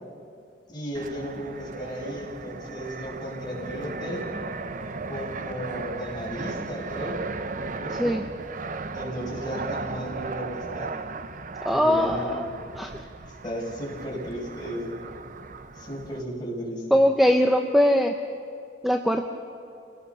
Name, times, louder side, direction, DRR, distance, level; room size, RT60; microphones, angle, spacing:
voice 1, 0.7-4.2 5.1-7.2 7.5-8.1 8.9-10.9 11.7-12.3 13.4-15.0 15.7-16.9, equal, 25° left, -5 dB, 6.5 m, -34 dB
Fixed-wing aircraft airplane, 0.9-16.2, right 3 dB, 45° right, 0.8 m, -36 dB
voice 2, 11.6-12.9 16.9-18.1 18.8-19.2, equal, ahead, 4 dB, 0.7 m, -21 dB
27.5 x 18.0 x 7.0 m, 2.5 s
head